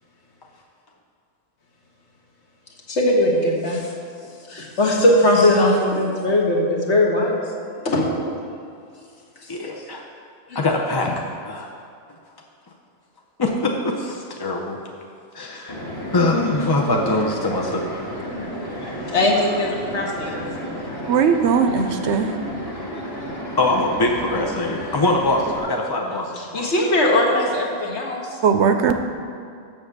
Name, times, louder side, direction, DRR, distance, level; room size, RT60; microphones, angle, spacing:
voice 1, 2.9-3.9 4.5-7.4 7.8-8.1 9.4-9.5 10.5-10.6 19.1-20.5 26.1-28.4, left 1 dB, 60° left, -2 dB, 1.5 m, -20 dB
voice 2, 9.5-10.0 10.5-11.1 11.4-11.7 13.4-14.8 15.3-15.8 16.1-17.8 23.6-26.7, left 2 dB, 40° left, 1 dB, 0.3 m, -22 dB
sound 1, 15.7-25.6, equal, 20° left, 1.0 m, -32 dB
voice 3, 21.1-22.4 28.4-28.9, right 6 dB, 70° right, 7 dB, 0.8 m, -18 dB
7.3 x 6.1 x 6.6 m, 2.4 s
omnidirectional pair, 1.3 m